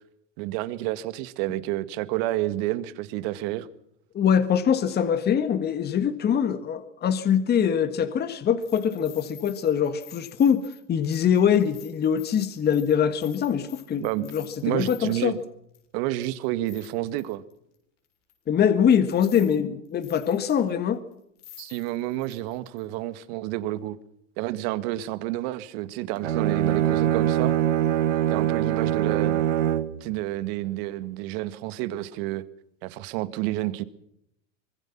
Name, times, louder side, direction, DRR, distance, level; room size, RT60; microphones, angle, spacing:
voice 1, 0.4-3.7 14.0-15.4 15.9-17.4 21.6-24.0 24.4-27.5 28.3-29.4 30.0-32.4 32.8-33.8, right 16 dB, 55° right, 1.9 m, -30 dB
voice 2, 4.1-15.4 18.5-21.0, left 8 dB, 25° left, 1.8 m, -23 dB
sound 1, 7.6-7.7 8.6-15.3 15.7-15.8 16.2-17.5 18.3-18.4 18.9-19.6 19.8-20.7 21.1-21.2 21.4-22.8 23.2-23.3, left 11 dB, 70° left, 6.9 m, -49 dB
Bowed string instrument, 26.2-30.0, right 11 dB, 85° right, 1.7 m, -23 dB
25.5 x 21.0 x 6.0 m
hypercardioid pair, 110°, 37 cm